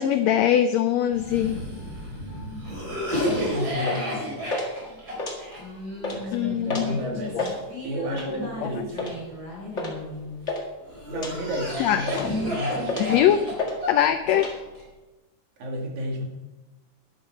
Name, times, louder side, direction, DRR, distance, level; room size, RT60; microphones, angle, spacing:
voice 1, 0.0-1.6 6.3-7.0 7.3-7.4 8.6-8.7 11.8-12.3 13.0-13.4 13.9-14.5, left 10 dB, 85° left, 9 dB, 1.5 m, -22 dB
Cough, 1.1-10.3 10.9-14.8, left 1 dB, 30° right, 4.2 m, -33 dB
voice 2, 2.2-3.0 3.2-4.5 6.1-9.2 11.1-13.4 15.6-16.2, equal, 65° right, 0 dB, 3.8 m, -33 dB
sound 1, 3.2-3.4 3.9-4.2 4.5-4.7 5.1-5.7 6.0-6.2 6.7-6.9 7.2-7.6 8.1-8.4 9.0-9.2 9.8-10.0 10.2-10.6 11.1-11.3 11.8-12.4 12.8-13.2 13.6-13.8 14.0-14.5, left 2 dB, 30° left, 1.6 m, -31 dB
12.5 x 10.5 x 4.8 m, 1.1 s
omnidirectional pair, 3.7 m